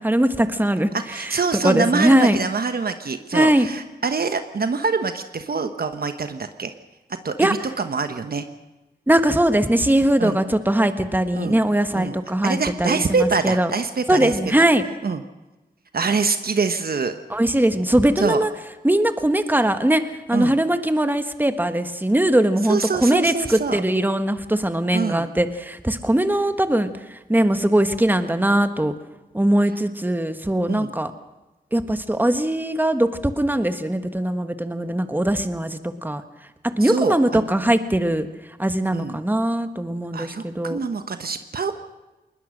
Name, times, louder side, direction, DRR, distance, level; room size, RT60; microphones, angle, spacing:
voice 1, 0.0-0.9 1.2-2.4 3.3-3.7 7.4-7.5 9.1-13.7 14.1-14.8 17.3-18.5 18.8-20.0 20.3-28.9 29.3-31.1 31.7-36.2 36.6-38.3 38.6-40.8, right 1 dB, 10° right, 9 dB, 1.4 m, -20 dB
voice 2, 0.9-6.7 7.2-8.5 10.2-10.4 11.3-11.6 11.9-12.1 12.4-14.3 15.0-15.2 15.9-17.1 18.2-18.4 20.3-20.6 22.7-23.8 24.9-25.3 30.7-30.9 36.8-37.5 38.9-39.2 40.1-41.8, right 4 dB, 65° right, 8 dB, 1.1 m, -25 dB
20.5 x 20.0 x 6.4 m, 1.1 s
cardioid pair, 60°, 17 cm